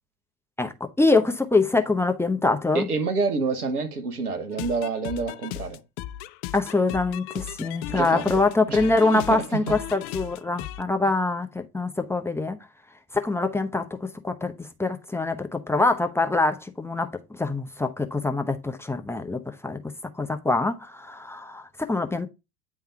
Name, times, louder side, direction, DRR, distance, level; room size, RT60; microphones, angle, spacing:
voice 1, 0.6-2.9 6.5-12.6 13.1-19.8 20.2-22.3, left 3 dB, 5° left, 0.8 m, -24 dB
voice 2, 2.7-5.8 7.9-8.4 8.7-9.7, right 4 dB, 85° right, 1.3 m, -28 dB
sound 1, 4.5-10.8, left 14 dB, 50° left, 0.5 m, -36 dB
9.7 x 3.5 x 4.3 m
figure-of-eight pair, 75°, 44 cm